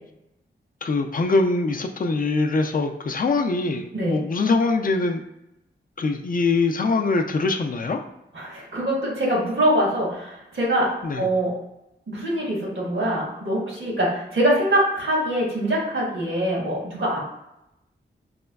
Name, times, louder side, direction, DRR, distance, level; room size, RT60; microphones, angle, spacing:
voice 1, 0.8-5.2 6.0-8.0 11.0-11.3, left 3 dB, 45° left, 5 dB, 0.4 m, -23 dB
voice 2, 8.3-11.6 12.1-17.2, right 1 dB, 80° right, -4 dB, 1.2 m, -24 dB
4.2 x 2.2 x 2.2 m, 0.87 s
cardioid pair, 45°, 20 cm